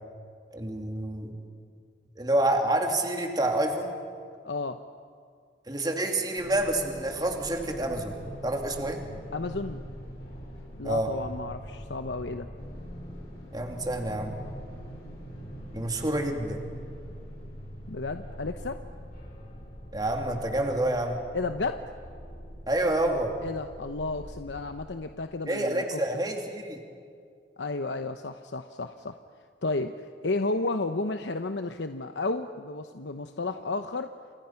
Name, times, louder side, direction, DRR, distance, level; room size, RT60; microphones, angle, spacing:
voice 1, 0.5-1.3 2.2-3.9 5.7-8.2 8.4-9.0 10.8-11.1 13.5-14.4 15.7-16.7 19.9-21.2 22.7-23.3 25.5-26.8, right 1 dB, 20° right, 3 dB, 2.5 m, -28 dB
voice 2, 4.4-4.8 9.3-9.8 10.8-12.5 17.9-18.8 21.3-21.8 23.4-26.0 27.6-29.2 29.6-34.1, left 3 dB, 80° left, 8 dB, 0.9 m, -32 dB
sound 1, 6.4-24.8, equal, 55° left, 7.9 m, -43 dB
29.0 x 28.0 x 5.9 m, 2.2 s
head